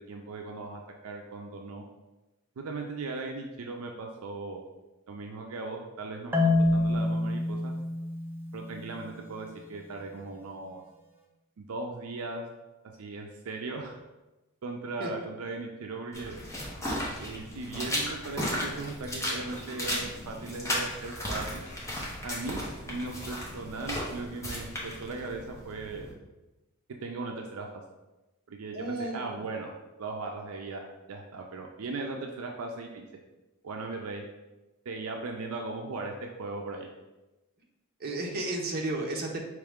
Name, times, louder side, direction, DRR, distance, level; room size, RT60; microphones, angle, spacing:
voice 1, 0.0-1.8 2.6-4.6 5.1-7.7 8.5-10.8 11.6-12.5 13.0-14.0 14.6-16.4 17.2-21.6 22.2-26.1 27.0-27.7 28.5-29.7 30.0-33.1 33.6-34.2 34.9-36.9, right 3 dB, 75° right, 2 dB, 0.4 m, -38 dB
Marimba xylophone, 6.3-9.3, left 2 dB, 10° right, 0.4 m, -27 dB
sound 1, 16.1-26.1, left 1 dB, 15° left, 0.8 m, -35 dB
voice 2, 28.7-29.4 38.0-39.4, right 2 dB, 45° right, 0 dB, 0.7 m, -33 dB
4.7 x 3.1 x 3.5 m, 1.1 s
head